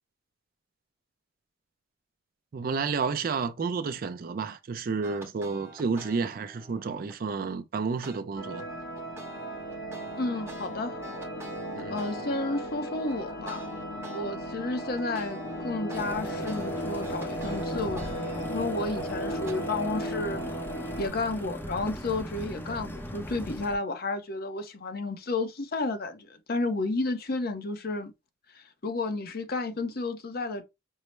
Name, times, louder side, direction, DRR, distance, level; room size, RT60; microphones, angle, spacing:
voice 1, 2.5-8.7 11.8-12.0, right 5 dB, 50° right, 0.4 m, -31 dB
sound 1, 5.0-7.4 8.0-8.2 8.6-14.2 14.6-19.5, right 2 dB, 15° right, 0.9 m, -47 dB
sound 2, 8.4-21.1, equal, 75° left, 1.0 m, -36 dB
voice 2, 10.2-11.0 11.9-13.7 14.1-20.4 21.0-28.1 28.5-30.6, left 3 dB, 55° left, 0.7 m, -32 dB
sound 3, 15.9-23.8, equal, 10° left, 0.6 m, -39 dB
5.4 x 2.0 x 3.1 m
head